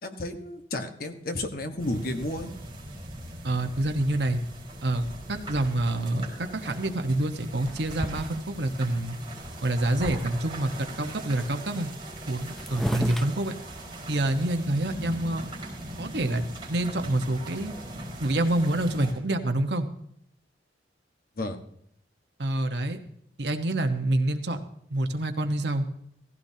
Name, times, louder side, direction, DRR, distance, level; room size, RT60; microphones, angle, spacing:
voice 1, 0.0-2.5 21.4-21.6, left 1 dB, 55° left, 6 dB, 1.3 m, -32 dB
sound 1, 1.8-19.1, right 1 dB, 25° right, 4.5 m, -40 dB
voice 2, 3.4-4.4 4.8-9.2 9.6-11.9 12.3-13.5 14.1-15.5 16.0-17.7 18.2-19.9 22.4-23.0 23.4-24.6 24.9-25.8, right 1 dB, 70° right, 6 dB, 1.2 m, -27 dB
sound 2, 7.7-8.8 9.3-9.4 9.6-10.1 10.4-11.1 11.9-12.0 12.2-14.3, equal, ahead, 0.5 m, -35 dB
16.0 x 15.5 x 2.8 m, 0.70 s
head